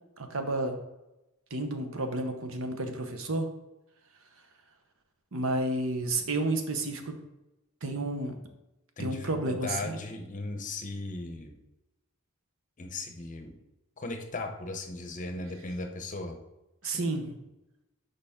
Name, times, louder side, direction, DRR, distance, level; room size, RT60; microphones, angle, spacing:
voice 1, 0.2-0.8 1.5-3.5 5.3-7.1 7.8-8.3 9.0-10.0 16.8-17.3, right 2 dB, 65° right, 6 dB, 0.9 m, -31 dB
voice 2, 9.0-11.5 12.8-13.5 14.0-16.4 16.8-17.1, left 2 dB, 35° left, 5 dB, 0.8 m, -37 dB
6.7 x 5.1 x 3.6 m, 0.97 s
head